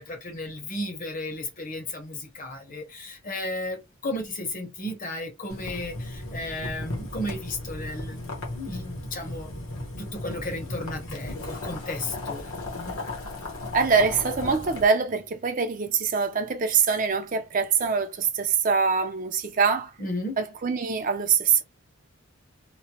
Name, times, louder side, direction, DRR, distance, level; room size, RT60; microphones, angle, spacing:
voice 1, 0.0-9.5 10.0-12.5 12.8-13.0 20.0-20.4, left 1 dB, 35° left, 0.8 m, -34 dB
Boiling, 5.5-14.8, left 2 dB, 65° left, 1.0 m, -36 dB
voice 2, 13.7-19.9 20.4-21.6, right 5 dB, 35° right, 0.5 m, -24 dB
3.0 x 2.1 x 2.9 m
head